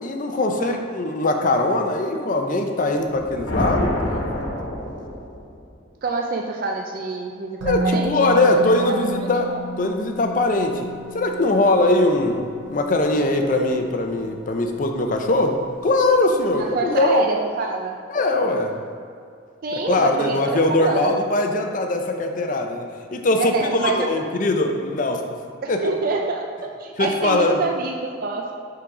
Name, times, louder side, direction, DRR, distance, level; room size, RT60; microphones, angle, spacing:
voice 1, 0.0-4.3 7.6-9.5 9.8-10.9 11.1-12.4 12.7-17.2 18.1-18.7 19.7-25.2 25.7-25.8 27.0-27.6, left 2 dB, 40° left, 4 dB, 0.5 m, -21 dB
sound 1, 3.1-5.6, left 1 dB, 85° left, 1.1 m, -27 dB
voice 2, 6.0-8.3 8.9-9.6 16.5-18.0 19.6-21.1 23.4-24.1 25.6-28.5, right 3 dB, 45° right, 1 dB, 0.4 m, -26 dB
Musical instrument, 7.6-15.5 15.8-16.0, right 1 dB, 75° right, 1.3 m, -33 dB
5.6 x 3.9 x 4.8 m, 2.3 s
head